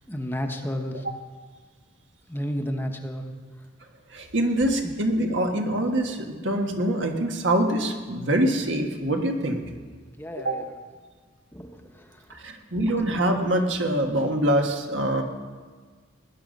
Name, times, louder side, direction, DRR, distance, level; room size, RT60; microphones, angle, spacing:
voice 1, 0.1-1.0 2.3-3.2 4.8-4.9 10.2-10.7 11.5-12.1, equal, 10° left, 4 dB, 0.9 m, -32 dB
voice 2, 4.1-9.6 10.4-10.6 12.3-15.2, right 1 dB, 75° right, 3 dB, 1.5 m, -24 dB
19.0 x 10.5 x 5.3 m, 1.5 s
head